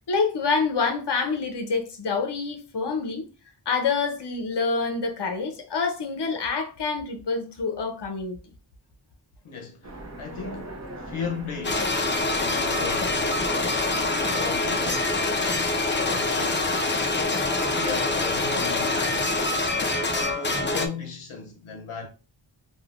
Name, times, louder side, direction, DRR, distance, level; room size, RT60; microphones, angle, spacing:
voice 1, 0.1-3.3 3.7-8.4, left 4 dB, 55° left, 0.7 m, -27 dB
voice 2, 9.4-16.9 17.7-22.1, left 5 dB, 90° left, 0.7 m, -37 dB
Train, 9.8-16.8, right 1 dB, 35° right, 0.8 m, -41 dB
sound 1, 11.6-20.9, left 2 dB, 25° left, 0.4 m, -25 dB
3.2 x 2.4 x 2.4 m
wide cardioid pair, 40°, 48 cm